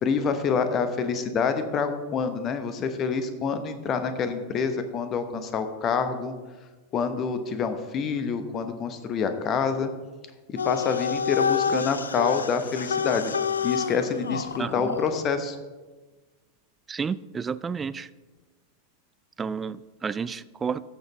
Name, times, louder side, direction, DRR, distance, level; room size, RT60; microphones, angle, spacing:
voice 1, 0.0-6.3 6.9-9.9 10.5-13.3 13.6-15.6, left 5 dB, 30° left, 9 dB, 1.0 m, -27 dB
sound 1, 10.6-15.3, left 6 dB, 70° left, 0.3 m, -28 dB
voice 2, 14.6-15.0 16.9-18.1 19.4-20.8, right 6 dB, 20° right, 16 dB, 0.3 m, -31 dB
14.0 x 6.6 x 3.4 m, 1.2 s
figure-of-eight pair, 90°, 0 cm